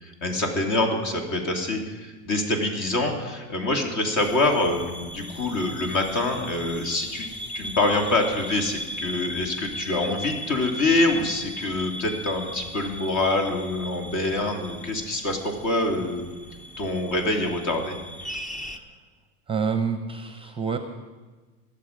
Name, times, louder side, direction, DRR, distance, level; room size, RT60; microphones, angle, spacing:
voice 1, 0.0-7.3 7.5-16.3 16.8-18.0, left 2 dB, 45° left, 3 dB, 2.6 m, -25 dB
sound 1, 4.2-18.8, equal, 20° left, 0.8 m, -38 dB
voice 2, 19.5-20.8, right 5 dB, 15° right, 7 dB, 0.8 m, -28 dB
22.5 x 7.4 x 5.1 m, 1.3 s
supercardioid pair, 105°, 42 cm